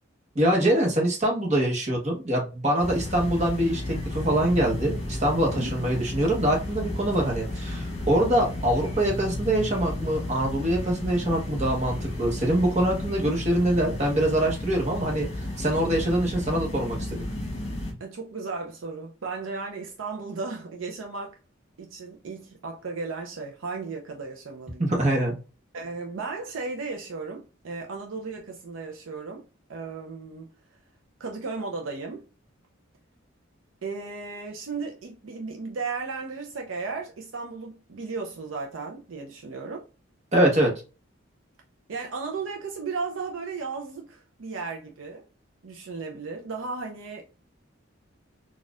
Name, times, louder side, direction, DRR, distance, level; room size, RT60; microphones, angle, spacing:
voice 1, 0.3-17.2 24.8-25.4 40.3-40.7, right 1 dB, 35° right, 1.1 m, -24 dB
sound 1, 2.8-17.9, left 1 dB, 30° left, 1.4 m, -33 dB
voice 2, 18.0-21.4 21.8-24.9 25.7-29.4 29.7-30.5 31.2-32.3 33.8-39.9 41.9-45.2 45.6-47.2, right 4 dB, 85° right, 0.6 m, -35 dB
4.0 x 2.4 x 2.3 m
head